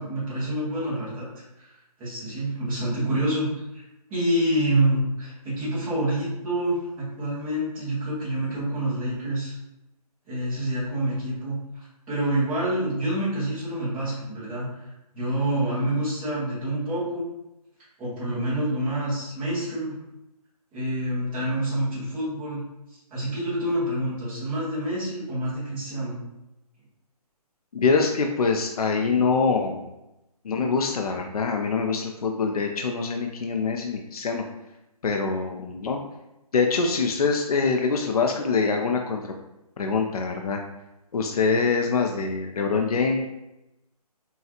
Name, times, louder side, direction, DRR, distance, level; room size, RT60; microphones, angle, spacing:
voice 1, 0.0-1.7 2.0-3.5 3.7-3.8 4.1-9.5 10.3-17.2 18.0-20.0 20.7-22.6 22.9-26.2, right 1 dB, 5° right, -11 dB, 0.7 m, -27 dB
voice 2, 27.7-29.8 30.4-34.4 35.0-36.0 36.5-39.3 39.8-40.6 41.1-43.3, left 4 dB, 65° left, 2 dB, 0.6 m, -24 dB
5.5 x 2.4 x 2.8 m, 0.92 s
hypercardioid pair, 165°, 20 cm